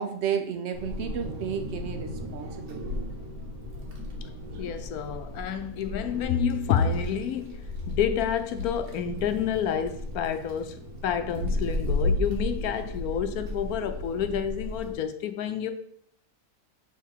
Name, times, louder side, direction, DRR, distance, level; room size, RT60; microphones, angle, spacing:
voice 1, 0.0-3.0, right 7 dB, 55° right, 1.0 m, -32 dB
Wind, 0.7-14.9, left 1 dB, 75° right, 1.7 m, -34 dB
voice 2, 4.6-15.7, left 8 dB, 75° left, 1.0 m, -29 dB
7.0 x 3.5 x 4.5 m
omnidirectional pair, 1.6 m